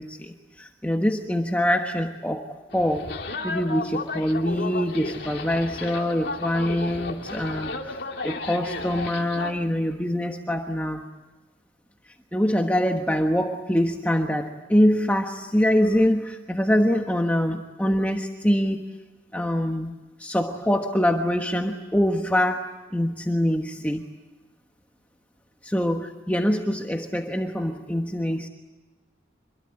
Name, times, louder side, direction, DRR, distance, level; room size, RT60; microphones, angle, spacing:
voice 1, 0.0-3.2 3.4-8.0 8.2-11.0 12.3-18.8 19.3-19.9 20.2-24.0 25.6-28.5, equal, 10° left, 3 dB, 1.3 m, -24 dB
sound 1, 2.7-9.5, left 3 dB, 55° left, 2.3 m, -33 dB
27.0 x 23.0 x 8.9 m, 1.2 s
head